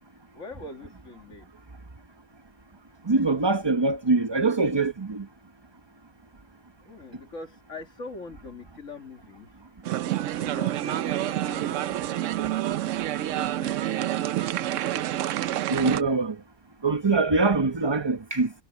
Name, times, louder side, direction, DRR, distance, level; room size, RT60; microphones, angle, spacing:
voice 1, 0.1-1.5 6.8-9.7 10.4-12.5 13.3-14.4, left 3 dB, 90° left, 2.7 m, -43 dB
voice 2, 3.0-5.3 15.7-16.4 16.8-18.5, right 3 dB, 25° right, 1.0 m, -23 dB
sound 1, 9.9-16.0, right 13 dB, 85° right, 1.0 m, -28 dB
omnidirectional pair, 1.3 m